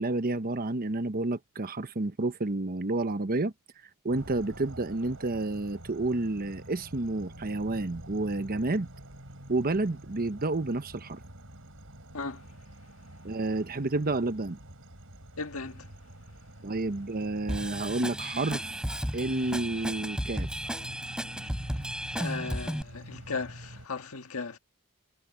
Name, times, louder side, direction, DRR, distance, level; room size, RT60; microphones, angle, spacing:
voice 1, 0.0-3.5 4.0-8.9 9.5-11.2 13.2-14.6 16.6-18.7 19.1-20.5, right 2 dB, 45° right, 1.0 m, -30 dB
sound 1, 4.1-23.9, right 1 dB, 65° right, 7.5 m, -48 dB
voice 2, 15.4-15.8 22.1-24.6, left 4 dB, 70° left, 1.7 m, -36 dB
Drum kit / Drum, 17.5-22.8, equal, 5° right, 3.6 m, -34 dB
head